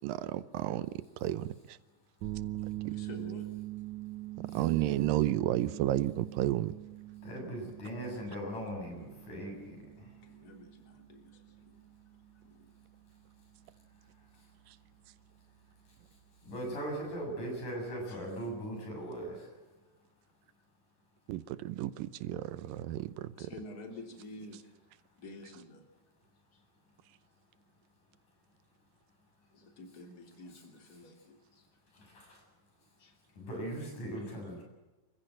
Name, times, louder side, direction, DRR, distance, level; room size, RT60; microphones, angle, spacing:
voice 1, 0.0-1.8 2.9-3.0 4.5-6.7 21.3-23.5, right 14 dB, 90° right, 15 dB, 2.6 m, -32 dB
sound 1, 2.2-18.1, right 16 dB, 65° right, 2.3 m, -45 dB
voice 2, 2.9-3.5 10.3-11.8 12.4-12.7 18.1-18.3 23.4-24.7 25.2-25.9 26.5-26.6 29.5-31.7 33.0-33.1 34.2-34.3, left 2 dB, 30° left, 4 dB, 3.6 m, -49 dB
voice 3, 7.2-9.8 16.4-19.5 32.1-32.4 33.4-34.6, right 1 dB, 65° left, 1 dB, 9.0 m, -39 dB
28.0 x 15.0 x 7.7 m, 1.1 s
omnidirectional pair, 3.9 m